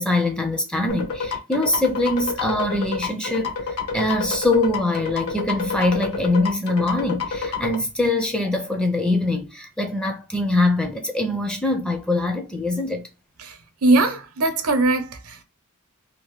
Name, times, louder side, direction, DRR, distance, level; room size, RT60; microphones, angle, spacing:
voice 1, 0.0-13.0, left 2 dB, 5° left, 0.4 m, -23 dB
sound 1, 0.9-7.7, left 5 dB, 70° left, 0.9 m, -28 dB
voice 2, 13.4-15.4, right 2 dB, 70° right, 0.7 m, -21 dB
2.8 x 2.6 x 3.0 m
head